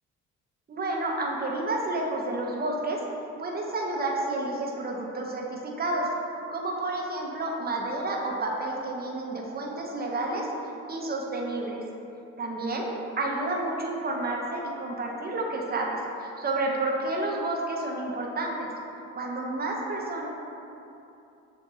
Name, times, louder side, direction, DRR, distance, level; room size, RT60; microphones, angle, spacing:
voice 1, 0.7-3.0 3.4-6.1 6.5-10.5 10.9-11.8 12.4-12.8 13.2-20.3, right 2 dB, 30° right, -1 dB, 0.8 m, -30 dB
7.3 x 2.6 x 2.7 m, 2.8 s
cardioid pair, 90°, 30 cm